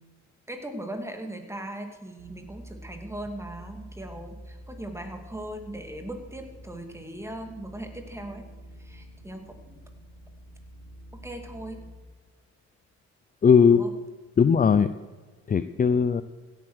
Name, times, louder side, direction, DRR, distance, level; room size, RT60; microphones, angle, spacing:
voice 1, 0.5-8.5 8.8-9.8 11.2-11.8 13.7-14.0, right 1 dB, 10° right, 5 dB, 2.3 m, -39 dB
sound 1, 2.2-11.9, equal, 60° right, 3.3 m, -47 dB
voice 2, 13.4-13.8 14.4-14.9 15.5-16.2, left 6 dB, 30° left, 12 dB, 0.5 m, -18 dB
16.0 x 8.7 x 6.4 m, 1.4 s
cardioid pair, 90°, 30 cm